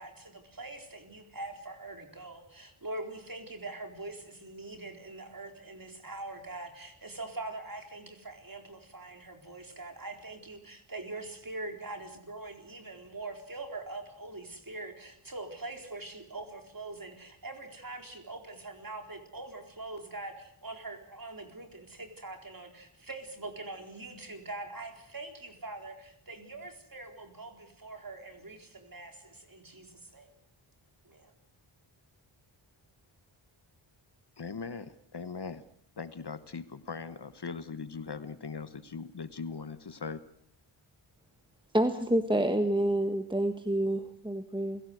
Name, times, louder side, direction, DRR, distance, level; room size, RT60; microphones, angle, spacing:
voice 1, 0.0-30.3 31.0-31.3, right 2 dB, 40° right, 4 dB, 4.2 m, -43 dB
voice 2, 34.4-35.6 36.0-40.2, left 5 dB, 50° left, 13 dB, 1.2 m, -40 dB
voice 3, 41.7-44.8, right 1 dB, 10° right, 7 dB, 1.4 m, -28 dB
29.0 x 17.0 x 8.0 m, 0.72 s
wide cardioid pair, 75°, 50 cm